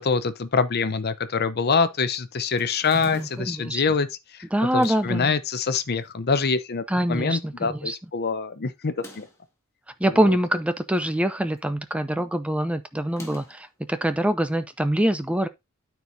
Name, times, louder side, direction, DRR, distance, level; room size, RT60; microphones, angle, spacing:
voice 1, 0.0-4.4 4.7-9.3 10.0-10.4, left 5 dB, 45° left, 0.7 m, -25 dB
sound 1, 2.6-3.6 4.6-5.2 6.0-6.6 7.0-7.1 7.3-7.4 8.8-9.5 10.5-11.3 11.6-11.9 13.0-13.7, left 1 dB, 15° left, 1.7 m, -48 dB
voice 2, 3.0-3.8 4.5-5.3 6.9-8.0 10.0-15.5, right 1 dB, 5° right, 0.5 m, -24 dB
12.5 x 4.6 x 2.7 m
head